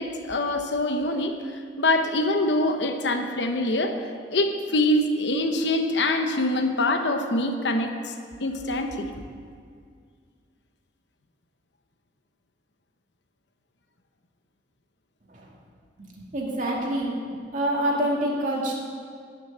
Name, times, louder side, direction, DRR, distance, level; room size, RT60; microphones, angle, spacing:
voice 1, 0.0-4.0 4.3-8.1 8.4-9.1, left 1 dB, 70° left, 5 dB, 0.9 m, -24 dB
voice 2, 16.2-18.7, right 1 dB, 45° right, -2 dB, 2.4 m, -27 dB
12.5 x 6.6 x 8.8 m, 2.1 s
head